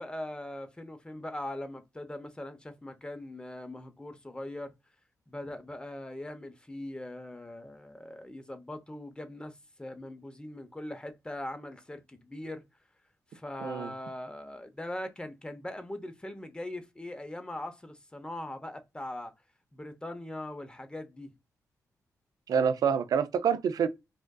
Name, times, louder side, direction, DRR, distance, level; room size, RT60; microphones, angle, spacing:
voice 1, 0.0-4.7 5.3-12.6 13.3-19.3 19.7-21.3, left 1 dB, 15° left, 0.6 m, -41 dB
voice 2, 13.6-13.9 22.5-23.9, right 7 dB, 75° right, 0.4 m, -27 dB
3.5 x 2.5 x 2.2 m
cardioid pair, 70°, 6 cm